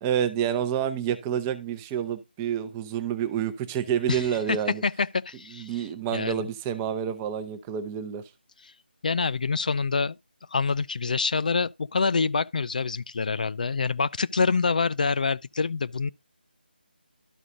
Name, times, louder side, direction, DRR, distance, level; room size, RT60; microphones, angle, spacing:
voice 1, 0.0-4.8 5.5-8.2, right 9 dB, 15° right, 0.6 m, -28 dB
voice 2, 4.1-4.6 4.8-5.9 6.1-6.5 8.6-8.7 9.0-10.1 10.5-16.1, left 4 dB, 50° left, 0.4 m, -26 dB
13.0 x 5.0 x 2.6 m
figure-of-eight pair, 160°, 6 cm